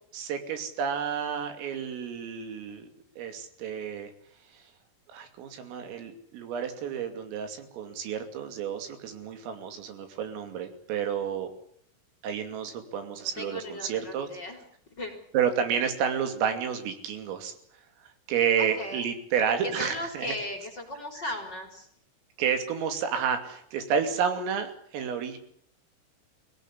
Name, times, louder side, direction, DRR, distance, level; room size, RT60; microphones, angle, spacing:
voice 1, 0.1-2.9 3.2-4.1 5.1-11.5 12.2-14.3 15.3-17.5 18.3-20.3 22.4-25.4, right 7 dB, 80° right, 7 dB, 5.3 m, -30 dB
voice 2, 13.4-14.6 14.9-15.1 18.6-19.1 19.6-21.9, left 1 dB, 25° left, 4 dB, 3.8 m, -36 dB
24.0 x 18.0 x 9.9 m, 0.64 s
omnidirectional pair, 5.9 m